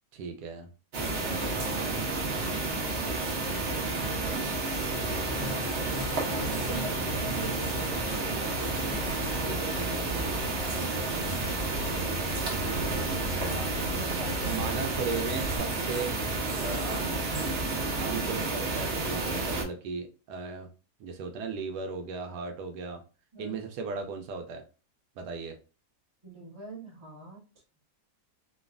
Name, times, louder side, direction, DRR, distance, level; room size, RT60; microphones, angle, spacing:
voice 1, 0.1-0.7 1.7-2.3 4.3-6.1 6.6-7.1 9.4-10.3 14.4-17.1 18.0-20.7 21.0-23.0 23.4-24.6 25.2-25.6, right 4 dB, 80° right, 5 dB, 1.1 m, -37 dB
sound 1, 0.9-19.6, right 3 dB, 50° right, 0.9 m, -31 dB
sound 2, 4.9-15.6, left 1 dB, 75° left, 1.1 m, -39 dB
voice 2, 6.2-7.6 13.4-14.8 23.3-23.6 26.2-27.4, right 3 dB, 20° right, -3 dB, 0.9 m, -42 dB
3.1 x 2.2 x 2.4 m, 0.34 s
omnidirectional pair, 1.7 m